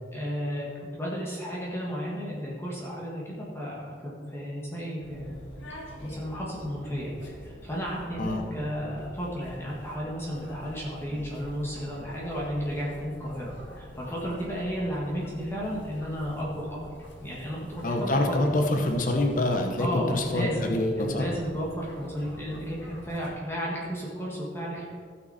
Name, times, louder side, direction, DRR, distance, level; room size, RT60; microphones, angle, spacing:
voice 1, 0.1-0.7 0.9-5.4 6.0-16.8 17.2-18.4 19.8-20.7 21.0-25.0, equal, 15° left, -5 dB, 1.7 m, -33 dB
sound 1, 5.0-23.3, equal, 85° left, 1.9 m, -46 dB
voice 2, 17.8-21.3, left 1 dB, 45° left, 3 dB, 1.0 m, -26 dB
16.5 x 6.0 x 4.3 m, 2.1 s
head